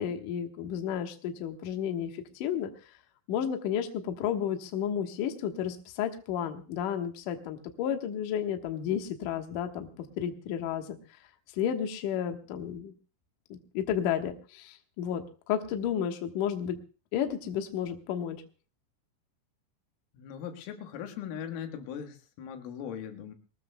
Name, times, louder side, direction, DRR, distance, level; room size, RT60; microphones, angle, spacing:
voice 1, 0.0-2.7 3.3-9.9 10.2-11.0 11.5-12.9 13.5-16.8 17.1-18.4, left 9 dB, 70° left, 5 dB, 2.0 m, -32 dB
voice 2, 20.1-23.4, left 8 dB, 85° left, 5 dB, 4.0 m, -39 dB
23.0 x 19.5 x 2.2 m, 0.35 s
omnidirectional pair, 5.6 m